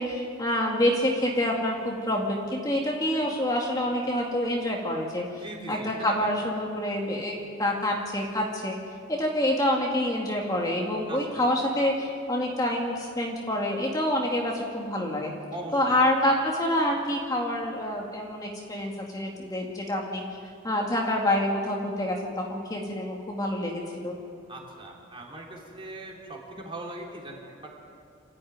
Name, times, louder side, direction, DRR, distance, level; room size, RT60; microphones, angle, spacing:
voice 1, 0.0-8.8 9.1-15.3 15.7-20.2 20.6-24.1, left 1 dB, 20° left, -1 dB, 2.2 m, -27 dB
voice 2, 5.4-6.3 11.1-11.4 15.5-16.1 24.5-27.8, right 1 dB, 25° right, -2 dB, 3.9 m, -40 dB
28.0 x 14.0 x 9.5 m, 2.3 s
head